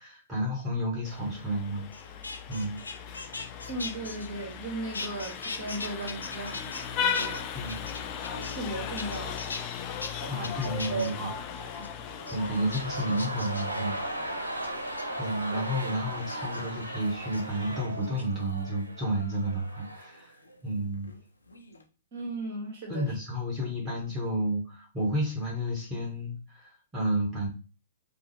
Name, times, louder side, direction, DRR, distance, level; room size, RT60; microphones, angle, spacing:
voice 1, 0.0-2.2 2.5-2.8 7.5-7.8 10.3-11.3 12.3-14.5 15.2-20.3 20.6-21.1 22.9-27.5, equal, 10° right, -4 dB, 1.3 m, -31 dB
Vehicle horn car horn honking, 1.0-17.9, left 7 dB, 30° left, 0.4 m, -38 dB
sound 1, 1.9-4.7 4.9-6.9 7.1-8.7 9.0-9.6 10.0-10.1 10.4-11.1 11.6-11.9 12.3-12.4 12.7-13.8 14.6-15.0 16.3-16.6 17.2-17.4 18.0-18.6 20.0-21.2 21.5-21.8, left 3 dB, 75° left, 0.6 m, -40 dB
voice 2, 3.7-6.7 7.0-7.7 8.3-11.9 15.5-15.7 22.1-23.1, right 2 dB, 45° right, 0 dB, 1.6 m, -37 dB
sound 2, 12.1-20.2 20.5-20.6, right 1 dB, 80° right, 0.7 m, -37 dB
5.1 x 2.0 x 3.2 m, 0.33 s
figure-of-eight pair, 110°, 0 cm